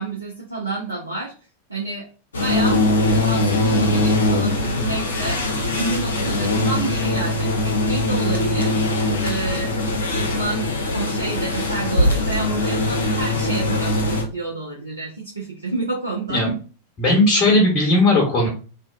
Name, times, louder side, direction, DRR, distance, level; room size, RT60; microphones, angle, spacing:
voice 1, 0.0-1.3 1.7-2.1 2.3-9.8 10.1-16.6, right 3 dB, 80° right, -4 dB, 0.5 m, -29 dB
sound 1, 2.3-14.2, left 1 dB, 70° left, 0.5 m, -21 dB
voice 2, 17.0-18.5, left 2 dB, 30° left, -2 dB, 0.9 m, -17 dB
2.6 x 2.2 x 2.3 m, 0.36 s
figure-of-eight pair, 90°, 0 cm